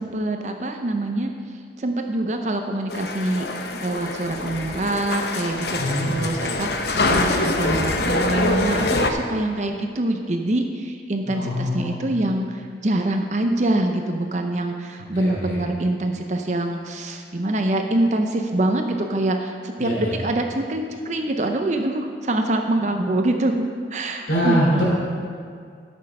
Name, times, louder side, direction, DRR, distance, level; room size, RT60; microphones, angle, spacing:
voice 1, 0.0-1.3 1.8-3.5 3.8-24.8, right 1 dB, 40° right, 4 dB, 0.6 m, -25 dB
sound 1, 2.9-9.1, left 2 dB, 60° left, 0.7 m, -24 dB
voice 2, 5.7-6.1 11.3-12.0 15.1-15.6 19.8-20.1 24.3-24.9, equal, 85° left, -5 dB, 3.0 m, -23 dB
12.5 x 6.5 x 5.3 m, 2.2 s
head